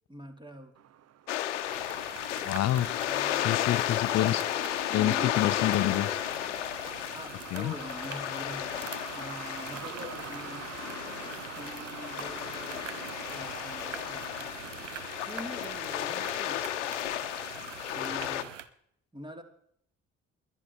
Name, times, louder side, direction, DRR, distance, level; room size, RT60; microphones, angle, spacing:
voice 1, 0.1-0.7 3.0-3.7 7.1-8.8 9.1-10.7 11.5-12.8 13.3-14.5 15.3-16.7 17.9-18.5 19.1-19.4, equal, 15° right, 2.8 m, -44 dB
Truck, 0.7-18.2, right 10 dB, 45° right, 0.9 m, -48 dB
sound 1, 1.3-18.4, left 12 dB, 80° left, 0.9 m, -33 dB
sound 2, 1.7-18.7, right 9 dB, 85° right, 0.7 m, -45 dB
voice 2, 2.5-2.9 3.4-4.4 4.9-6.2 7.5-7.7, left 14 dB, 45° left, 0.7 m, -27 dB
21.0 x 10.0 x 4.4 m
figure-of-eight pair, 45°, 36 cm